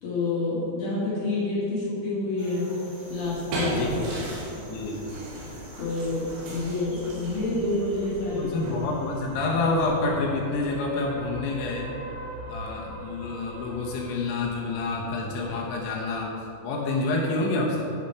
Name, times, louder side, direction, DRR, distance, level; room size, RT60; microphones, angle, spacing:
voice 1, 0.0-2.7 3.1-3.9 5.8-8.5, left 2 dB, 55° left, -7 dB, 2.4 m, -28 dB
sound 1, 2.4-9.9, equal, 35° right, 1.9 m, -48 dB
sound 2, 3.0-11.1, right 1 dB, 70° right, 4.2 m, -36 dB
voice 2, 3.7-5.0 8.3-11.9 12.5-16.3 16.6-17.8, left 3 dB, 75° left, -2 dB, 3.2 m, -28 dB
sound 3, 6.5-16.1, right 1 dB, 85° right, 4.1 m, -42 dB
12.0 x 5.9 x 4.7 m, 2.9 s
omnidirectional pair, 6.0 m